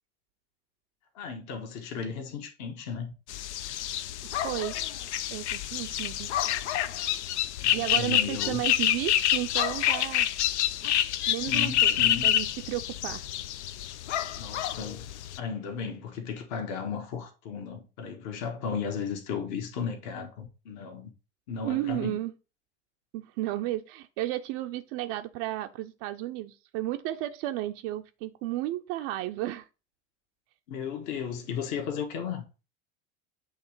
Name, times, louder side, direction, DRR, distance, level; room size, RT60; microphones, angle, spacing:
voice 1, 1.1-3.1 7.6-8.6 11.4-12.3 14.4-15.1 15.4-21.1 21.5-22.2 30.7-32.4, left 6 dB, 50° left, 1.4 m, -35 dB
sound 1, 3.3-15.4, left 11 dB, 65° left, 0.6 m, -28 dB
voice 2, 4.4-4.8 5.3-6.3 7.7-10.3 11.3-13.3 21.6-22.3 23.1-29.7, right 15 dB, 45° right, 0.6 m, -33 dB
8.1 x 3.1 x 4.6 m
figure-of-eight pair, 80°, 37 cm